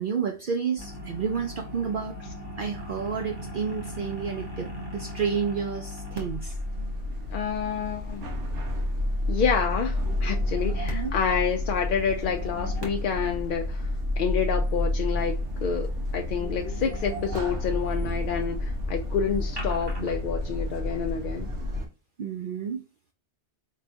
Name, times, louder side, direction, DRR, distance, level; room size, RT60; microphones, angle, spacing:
voice 1, 0.0-2.2 2.6-6.6 8.7-8.9 10.7-11.1 22.2-22.8, right 6 dB, 60° right, 0.7 m, -30 dB
sound 1, 0.8-20.2, left 2 dB, 25° right, 1.0 m, -40 dB
sound 2, 6.1-21.9, left 1 dB, 90° right, 1.3 m, -30 dB
voice 2, 7.3-8.3 9.3-15.9 16.1-21.5, left 6 dB, 60° left, 0.6 m, -28 dB
4.5 x 3.1 x 2.6 m
omnidirectional pair, 1.2 m